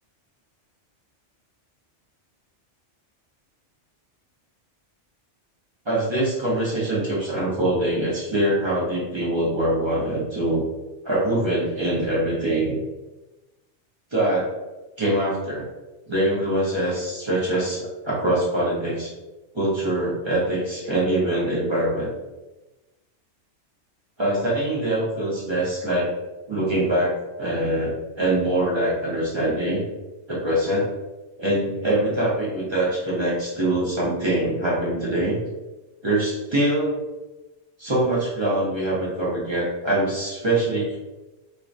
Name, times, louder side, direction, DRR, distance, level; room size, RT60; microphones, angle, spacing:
voice 1, 5.9-10.6 11.0-12.8 14.1-14.5 15.0-15.7 16.1-19.1 19.5-22.1 24.2-26.1 26.5-29.8 30.3-30.9 31.4-35.4 36.0-36.9 37.8-41.0, right 1 dB, 40° right, -7 dB, 0.4 m, -23 dB
2.4 x 2.1 x 2.5 m, 1.1 s
omnidirectional pair, 1.2 m